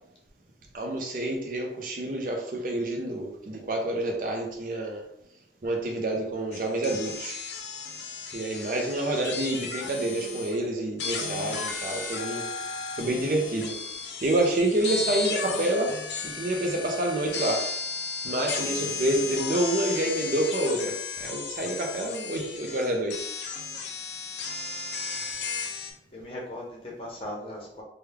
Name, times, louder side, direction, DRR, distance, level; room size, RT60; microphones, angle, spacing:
voice 1, 0.7-5.0 5.6-7.4 8.3-12.5 12.9-13.7 14.2-16.0 16.2-17.7 18.2-23.3, right 1 dB, 50° right, 2 dB, 0.5 m, -28 dB
sound 1, 6.5-10.6 11.0-25.9, left 4 dB, 80° left, 0.5 m, -34 dB
voice 2, 26.1-27.8, left 1 dB, 30° left, -3 dB, 0.9 m, -39 dB
3.3 x 2.2 x 3.3 m, 0.77 s
head